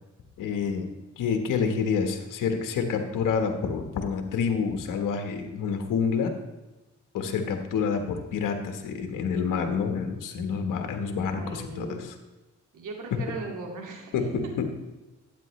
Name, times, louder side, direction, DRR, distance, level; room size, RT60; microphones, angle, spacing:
voice 1, 0.4-0.9 1.2-6.3 7.1-12.0 13.1-13.2 14.1-14.7, left 6 dB, 85° left, 5 dB, 1.3 m, -28 dB
voice 2, 11.2-12.0 12.7-14.7, right 4 dB, 80° right, 1 dB, 2.2 m, -38 dB
12.0 x 9.0 x 3.2 m, 1.1 s
cardioid pair, 70°, 31 cm